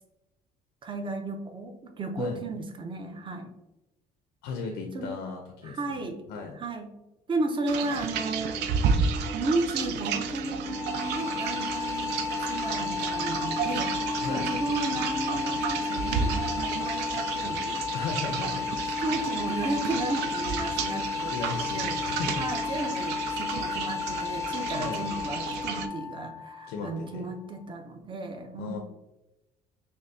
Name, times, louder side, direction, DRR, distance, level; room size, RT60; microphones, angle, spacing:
voice 1, 0.8-3.5 4.9-5.2 5.6-6.2 6.5-6.9 7.3-8.6 9.2-17.8 18.3-18.7 19.0-21.3 21.7-22.0 22.4-28.8, right 2 dB, 30° right, 5 dB, 0.6 m, -34 dB
voice 2, 4.4-5.8 6.3-6.6 14.2-14.5 17.9-18.6 21.2-22.4 24.8-25.0 26.7-27.3 28.6-28.8, left 4 dB, 90° left, 3 dB, 0.5 m, -36 dB
sound 1, 7.7-25.9, right 5 dB, 85° right, 0.4 m, -31 dB
sound 2, 10.6-27.6, left 7 dB, 20° left, 0.4 m, -34 dB
5.3 x 2.0 x 2.6 m, 0.95 s
cardioid pair, 110°, 17 cm